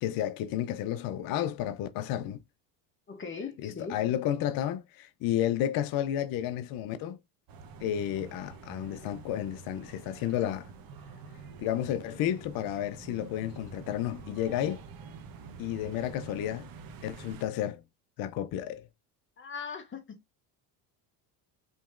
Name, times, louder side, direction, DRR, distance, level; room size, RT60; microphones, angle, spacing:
voice 1, 0.0-2.4 3.6-7.2 7.8-10.7 11.6-14.8 15.6-16.7 17.0-17.8 18.2-18.9, left 11 dB, 45° left, 0.5 m, -31 dB
voice 2, 3.1-4.0 19.4-20.2, left 5 dB, 25° left, 1.0 m, -39 dB
sound 1, 7.5-17.4, right 5 dB, 45° right, 1.0 m, -47 dB
5.2 x 2.9 x 2.4 m
supercardioid pair, 115°, 50 cm